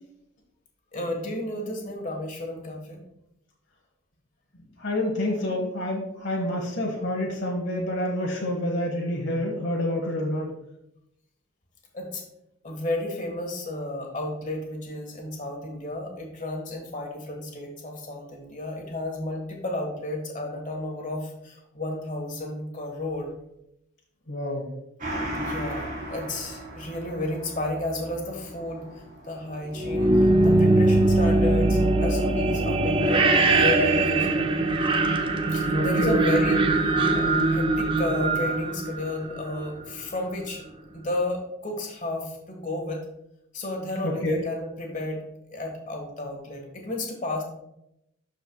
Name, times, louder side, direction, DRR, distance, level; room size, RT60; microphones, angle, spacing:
voice 1, 0.9-3.0 11.9-12.2 12.6-23.3 25.3-34.6 35.5-40.6 40.9-43.0 43.5-45.2 45.5-47.4, left 1 dB, 40° left, 1 dB, 1.4 m, -32 dB
voice 2, 4.8-10.5 24.3-24.7 35.7-36.2 44.0-44.4, left 1 dB, 60° left, -1 dB, 1.2 m, -28 dB
Gong, 25.0-34.0 34.3-34.4, right 1 dB, 40° right, 2.3 m, -39 dB
sound 1, 29.8-39.6, right 2 dB, 25° right, 0.5 m, -21 dB
11.5 x 4.5 x 2.3 m, 0.82 s
head